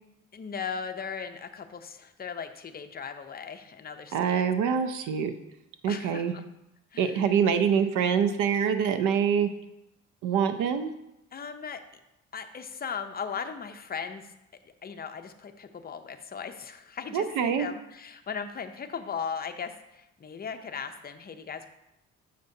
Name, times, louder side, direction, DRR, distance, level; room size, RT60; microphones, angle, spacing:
voice 1, 0.3-4.4 5.9-6.4 6.9-7.3 11.3-11.8 12.3-14.2 14.8-21.7, left 6 dB, 30° left, 7 dB, 0.6 m, -38 dB
voice 2, 4.1-5.3 5.8-6.3 7.0-9.5 10.2-10.9 17.1-17.7, right 7 dB, 90° right, 10 dB, 0.6 m, -25 dB
6.6 x 6.6 x 2.7 m, 0.87 s
cardioid pair, 90°, 30 cm